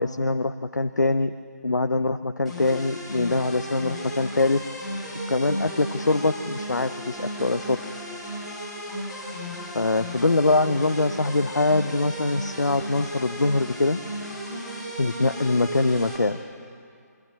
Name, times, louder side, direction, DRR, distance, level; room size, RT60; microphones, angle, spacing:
voice 1, 0.0-1.3 1.6-4.9 5.3-7.8 9.7-14.0 15.0-16.4, left 2 dB, 80° left, 10 dB, 0.6 m, -23 dB
sound 1, 2.5-16.2, equal, ahead, 3.8 m, -35 dB
22.5 x 15.0 x 8.4 m, 2.3 s
figure-of-eight pair, 150°, 10 cm